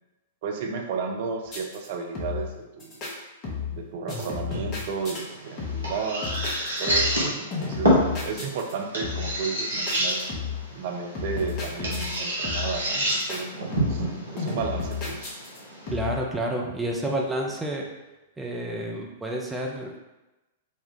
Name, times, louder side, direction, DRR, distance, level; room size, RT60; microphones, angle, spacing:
voice 1, 0.4-3.0 3.7-10.2 10.7-14.0 14.3-15.3, right 5 dB, 45° right, 3 dB, 0.5 m, -33 dB
sound 1, 1.5-1.9 2.2-2.5 2.8-3.1 3.4-3.8 4.1-5.2 5.6-6.0 6.2-7.2 7.5-8.7 9.0-9.4 9.9-10.7 11.2-12.2 12.4-12.8 13.1-13.4 13.7-14.1 14.4-15.6 15.9-16.2, left 5 dB, 30° left, 1.1 m, -32 dB
sound 2, 5.0-15.9, equal, 75° right, 1.3 m, -29 dB
voice 2, 15.9-17.9 18.4-20.0, right 1 dB, 5° right, -1 dB, 0.6 m, -29 dB
4.2 x 2.3 x 3.6 m, 1.0 s
figure-of-eight pair, 105°, 0 cm